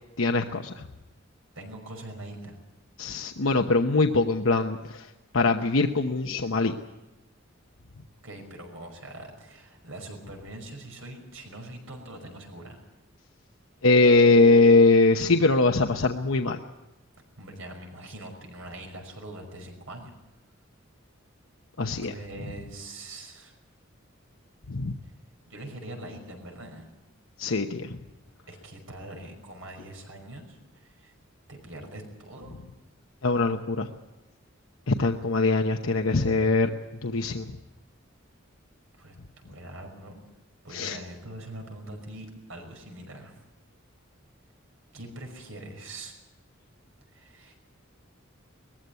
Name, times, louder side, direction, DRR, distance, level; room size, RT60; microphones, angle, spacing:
voice 1, 0.2-0.8 3.0-5.1 5.3-6.7 13.8-16.6 21.8-22.1 24.7-25.0 27.4-28.0 33.2-33.9 34.9-36.7 37.0-37.5 40.7-41.0, left 3 dB, 85° left, 4 dB, 1.0 m, -22 dB
voice 2, 1.6-2.6 8.2-12.8 17.4-20.2 22.0-23.5 25.5-26.9 28.5-31.1 31.5-32.6 39.0-40.2 40.6-43.4 44.9-46.1 47.1-47.5, right 1 dB, 80° right, 3 dB, 5.5 m, -43 dB
20.5 x 15.0 x 9.6 m, 1.0 s
head